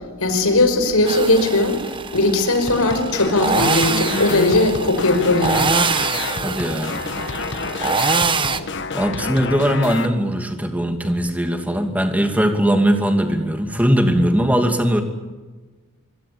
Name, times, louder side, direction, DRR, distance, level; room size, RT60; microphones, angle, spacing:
voice 1, 0.2-1.8 2.1-5.8, left 2 dB, 85° left, 7 dB, 5.4 m, -18 dB
sound 1, 1.1-8.6, right 4 dB, 20° right, 1.1 m, -24 dB
sound 2, 2.7-10.1, left 3 dB, 55° left, 1.6 m, -28 dB
voice 2, 6.4-7.0 8.9-15.0, equal, 5° right, 5 dB, 2.6 m, -19 dB
26.5 x 24.0 x 8.6 m, 1.3 s
head